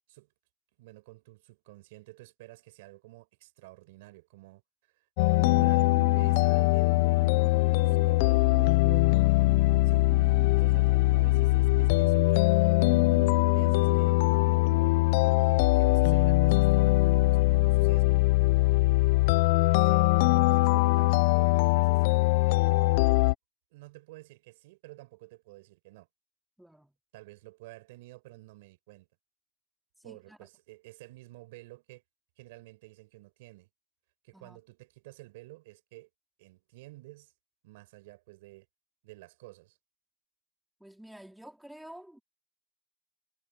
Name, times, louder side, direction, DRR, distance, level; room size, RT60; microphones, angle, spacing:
voice 1, 0.8-4.6 4.9-5.1 5.4-13.2 13.5-14.5 15.4-18.3 19.1-22.9 23.7-26.1 27.1-29.1 30.0-32.0 32.4-33.7 34.2-36.1 36.4-37.3 37.6-38.7 39.0-39.8, right 20 dB, 80° right, 6.4 m, -51 dB
sound 1, 5.2-23.3, left 21 dB, 65° left, 0.4 m, -22 dB
sound 2, 5.4-18.3, right 10 dB, 30° right, 1.9 m, -47 dB
voice 2, 26.6-26.9 30.0-30.5 34.3-34.6 40.8-42.2, right 1 dB, ahead, 2.7 m, -50 dB
supercardioid pair, 165°, 0 cm